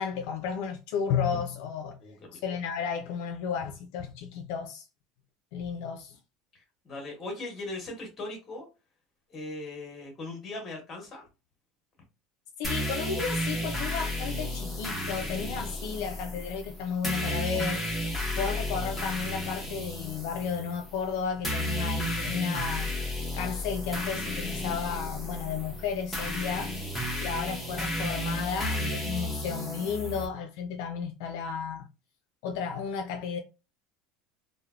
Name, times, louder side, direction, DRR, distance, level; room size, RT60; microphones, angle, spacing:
voice 1, 0.0-2.0 2.3-4.8 5.5-6.2 12.6-17.8 18.4-22.9 23.3-26.8 27.2-31.9 32.4-33.4, left 6 dB, 65° left, 0.4 m, -33 dB
voice 2, 2.0-2.4 6.5-8.6 9.3-11.3, left 2 dB, 20° left, 1.0 m, -39 dB
sound 1, 12.6-30.3, left 1 dB, 5° left, 0.6 m, -33 dB
3.2 x 2.1 x 2.3 m
cardioid pair, 170°, 0 cm